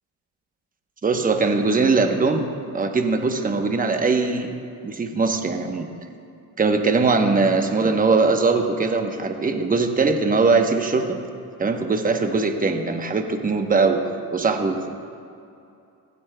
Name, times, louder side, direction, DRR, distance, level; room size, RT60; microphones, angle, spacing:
voice 1, 1.0-4.5 4.8-5.9 6.6-11.2 11.6-14.0 14.3-14.9, right 4 dB, 20° right, 5 dB, 1.0 m, -21 dB
15.5 x 15.0 x 2.2 m, 2.6 s
cardioid pair, 105°, 37 cm